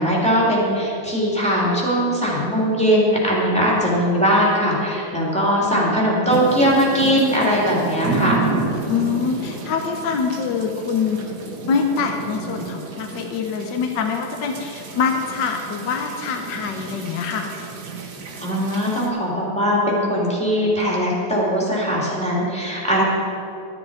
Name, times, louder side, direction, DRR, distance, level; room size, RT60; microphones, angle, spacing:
voice 1, 0.0-8.4 18.4-23.0, equal, 5° left, -6 dB, 2.7 m, -20 dB
sound 1, 6.3-19.1, right 3 dB, 55° right, 1.6 m, -30 dB
voice 2, 8.9-11.2 11.6-17.5, left 6 dB, 65° left, 4 dB, 1.4 m, -24 dB
13.0 x 11.0 x 4.9 m, 2.9 s
omnidirectional pair, 2.3 m